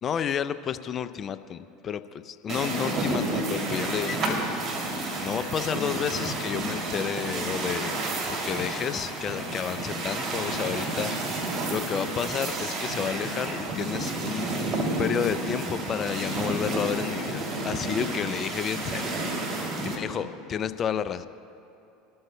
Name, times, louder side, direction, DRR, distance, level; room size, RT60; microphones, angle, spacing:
voice 1, 0.0-4.6 5.2-11.1 11.7-14.5 15.0-19.1 19.9-21.3, left 8 dB, 40° left, 13 dB, 0.5 m, -31 dB
sound 1, 2.5-20.0, right 2 dB, 45° right, 2.6 m, -30 dB
22.5 x 13.5 x 2.2 m, 2.9 s
hypercardioid pair, 80°, 0 cm